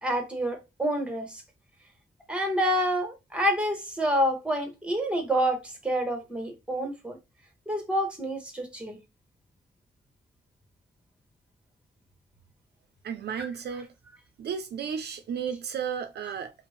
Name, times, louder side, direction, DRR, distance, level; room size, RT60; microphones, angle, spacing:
voice 1, 0.0-1.4 2.3-7.2 7.7-9.0 13.4-13.5 16.2-16.3, equal, 5° right, 1.0 m, -28 dB
voice 2, 13.0-13.9 14.4-16.5, right 7 dB, 65° right, 0.4 m, -33 dB
2.5 x 2.0 x 3.1 m
cardioid pair, 65°, 18 cm